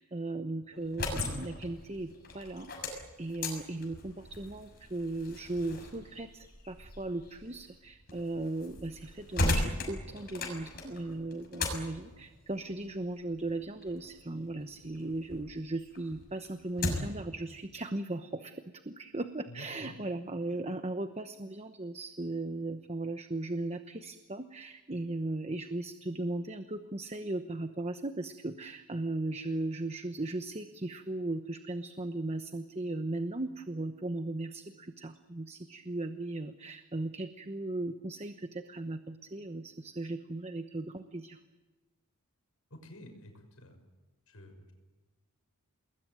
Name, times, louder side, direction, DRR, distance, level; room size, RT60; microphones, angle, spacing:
voice 1, 0.0-18.6 18.8-41.4, right 2 dB, 30° right, 8 dB, 1.0 m, -37 dB
sound 1, 0.8-15.5 15.9-17.3, left 2 dB, 45° left, 6.5 m, -38 dB
voice 2, 19.5-20.0 20.5-20.6 42.7-43.8 44.3-44.7, left 1 dB, 75° left, 5 dB, 6.0 m, -50 dB
28.5 x 20.5 x 9.1 m, 1.2 s
head